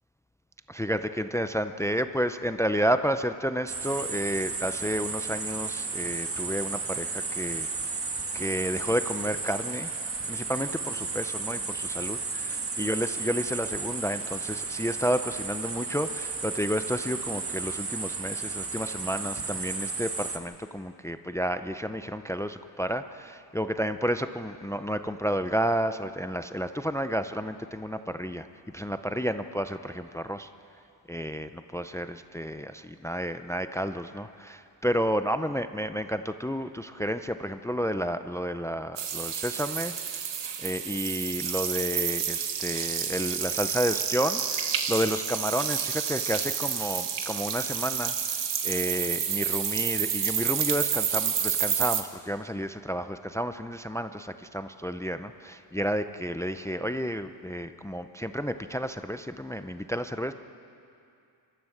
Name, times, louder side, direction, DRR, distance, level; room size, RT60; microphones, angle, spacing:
voice 1, 0.7-8.1 8.3-10.0 10.3-28.5 28.7-30.5 31.1-40.2 40.6-60.3, equal, 5° left, 10 dB, 0.4 m, -31 dB
sound 1, 3.7-20.4, right 4 dB, 30° right, 1.5 m, -33 dB
sound 2, 39.0-52.0, right 7 dB, 75° right, 1.5 m, -29 dB
27.0 x 13.5 x 7.8 m, 2.6 s
wide cardioid pair, 140°, 43 cm